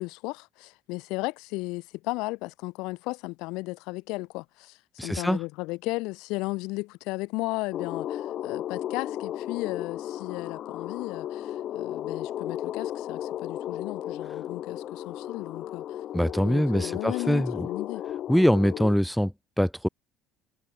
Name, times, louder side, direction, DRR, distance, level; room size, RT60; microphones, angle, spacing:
voice 1, 0.0-4.8 5.0-16.0 16.4-18.0, left 24 dB, 85° left, 3.8 m, -35 dB
voice 2, 5.0-5.4 16.1-17.7 18.3-19.9, equal, ahead, 5.4 m, -24 dB
sound 1, 7.7-18.9, left 11 dB, 55° left, 2.7 m, -35 dB
cardioid pair, 115°, 0 cm